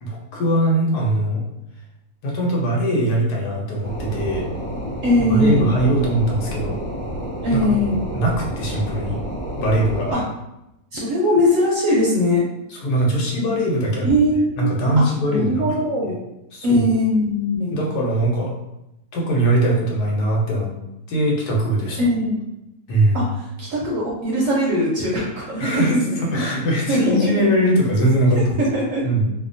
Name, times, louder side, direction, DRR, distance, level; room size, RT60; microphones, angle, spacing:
voice 1, 0.0-1.4 2.2-4.5 5.3-6.8 7.5-7.6 8.1-9.2 9.6-10.2 12.7-14.1 14.6-15.6 16.5-16.9 17.7-18.5 19.1-20.7 21.1-22.0 22.9-23.2 25.6-28.4 29.0-29.3, right 1 dB, 85° left, -1 dB, 1.2 m, -21 dB
sound 1, 3.8-10.1, equal, 5° left, 0.6 m, -30 dB
voice 2, 5.0-5.7 7.4-8.0 10.1-10.2 10.9-12.4 14.0-14.7 15.0-16.2 16.6-17.8 22.0-22.4 23.1-26.2 26.9-27.5 28.3-29.0, left 1 dB, 70° right, -4 dB, 0.9 m, -20 dB
2.8 x 2.1 x 2.5 m, 0.91 s
omnidirectional pair, 1.7 m